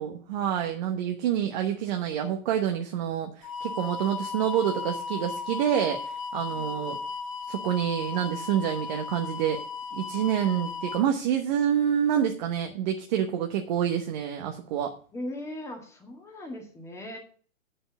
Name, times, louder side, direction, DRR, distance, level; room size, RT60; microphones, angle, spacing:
voice 1, 0.0-7.0 7.5-9.6 9.9-14.9, right 9 dB, 35° right, 4 dB, 1.1 m, -27 dB
sound 1, 3.4-11.0, left 5 dB, 25° left, 0.4 m, -36 dB
voice 2, 6.5-7.0 15.1-17.2, left 1 dB, 5° left, 2 dB, 1.9 m, -39 dB
7.8 x 6.7 x 8.0 m, 0.43 s
hypercardioid pair, 135°, 41 cm